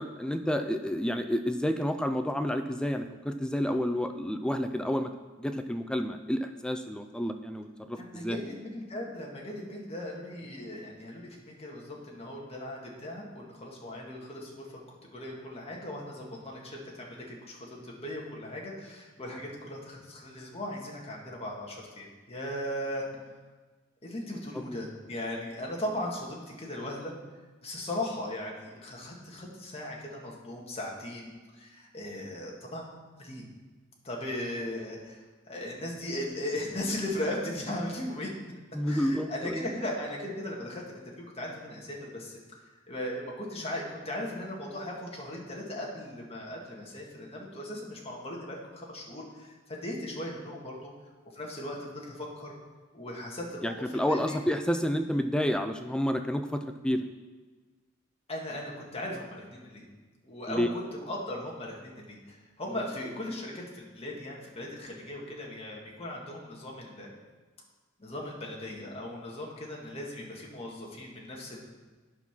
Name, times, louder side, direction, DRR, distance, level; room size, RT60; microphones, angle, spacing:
voice 1, 0.0-5.1 5.4-8.4 19.3-19.4 24.5-24.8 38.7-39.7 53.6-57.0 60.5-60.7, equal, 5° left, 7 dB, 0.4 m, -30 dB
voice 2, 8.0-14.8 15.1-23.1 24.0-27.1 27.6-32.8 33.2-33.4 34.0-35.2 35.5-38.3 38.9-42.4 42.9-50.9 51.3-52.5 52.9-54.4 58.3-59.9 60.2-67.1 68.0-71.7, left 1 dB, 30° left, -2 dB, 1.8 m, -38 dB
9.7 x 5.6 x 6.0 m, 1.3 s
head